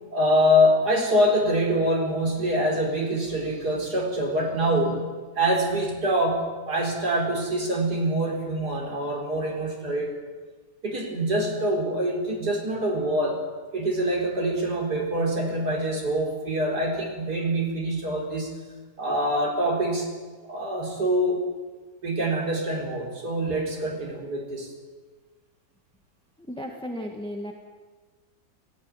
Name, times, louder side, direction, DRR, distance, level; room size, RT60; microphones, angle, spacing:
voice 1, 0.1-10.1 10.8-13.4 13.7-18.6 19.0-20.1 20.5-21.4 22.0-24.7, equal, 80° right, 0 dB, 4.6 m, -25 dB
voice 2, 26.4-27.5, equal, 5° left, 3 dB, 1.5 m, -34 dB
17.5 x 16.5 x 9.7 m, 1.4 s
omnidirectional pair, 1.7 m